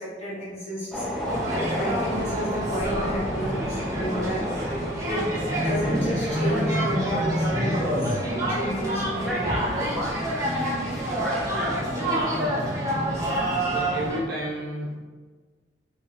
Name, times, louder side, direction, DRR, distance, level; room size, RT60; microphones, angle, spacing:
voice 1, 0.0-4.4 4.7-9.9, equal, 35° left, -9 dB, 1.5 m, -32 dB
sound 1, 0.9-11.8, left 1 dB, ahead, 0.5 m, -34 dB
sound 2, 1.2-14.2, right 1 dB, 20° right, 0.9 m, -27 dB
voice 2, 11.2-13.1 13.6-14.9, equal, 60° right, -4 dB, 0.6 m, -33 dB
3.0 x 2.8 x 4.1 m, 1.4 s
head